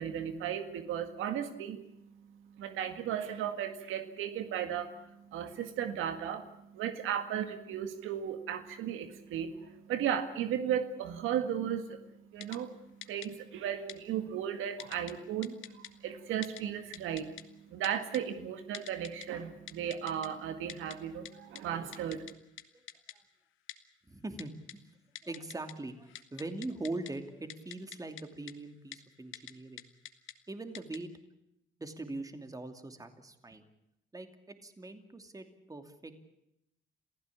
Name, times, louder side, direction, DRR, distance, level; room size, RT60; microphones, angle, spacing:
voice 1, 0.0-1.8 2.6-12.0 12.3-12.7 13.1-17.3 17.7-22.3, right 9 dB, 90° right, 8 dB, 1.9 m, -35 dB
Typing, 12.4-12.6 13.0-13.3 13.9-14.0 14.8-15.1 15.4-15.9 16.4-16.6 16.9-17.4 17.8-18.2 18.7-19.3 19.7-20.3 20.7-21.0 21.3-21.4 21.6-21.7 21.9-22.3 22.6-22.7 22.9-23.1 23.7-23.8 24.4-24.7 25.2-25.7 26.0-27.1 27.5-28.2 28.5-28.6 28.9-29.0 29.3-29.5 29.8-30.3 30.7-31.0, left 12 dB, 80° left, 1.5 m, -44 dB
voice 2, 24.1-24.8 25.2-29.9 30.5-31.1 31.8-33.6 34.1-36.2, right 2 dB, 15° right, 7 dB, 2.7 m, -42 dB
28.0 x 15.5 x 8.6 m, 0.84 s
cardioid pair, 90°, 20 cm